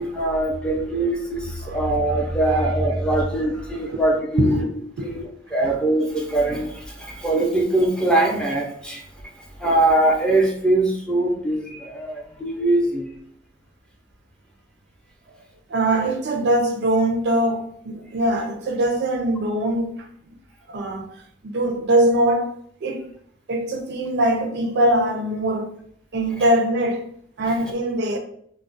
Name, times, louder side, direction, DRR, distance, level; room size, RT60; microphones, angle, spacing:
voice 1, 0.0-4.6 5.0-13.2 26.4-26.5 27.4-27.5, right 2 dB, 5° left, 0.5 m, -22 dB
voice 2, 15.7-20.3 20.7-22.5 22.8-23.0 23.5-25.7 26.1-27.0 27.4-28.2, right 1 dB, 60° right, 0.4 m, -22 dB
2.3 x 2.0 x 3.8 m
head